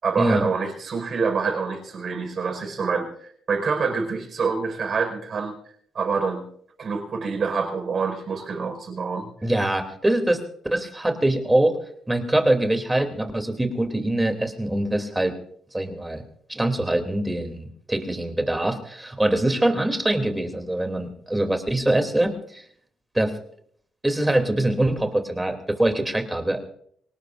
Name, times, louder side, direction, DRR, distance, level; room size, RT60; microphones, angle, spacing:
voice 1, 0.0-5.6 5.9-6.4 6.8-9.3, right 5 dB, 50° right, 3 dB, 5.1 m, -26 dB
voice 2, 9.4-10.4 10.7-11.7 12.1-15.3 15.7-16.2 16.5-22.6 23.1-23.4 24.0-26.6, right 1 dB, 10° right, 5 dB, 3.0 m, -23 dB
25.0 x 18.5 x 2.6 m, 0.62 s
cardioid pair, 90°, 0 cm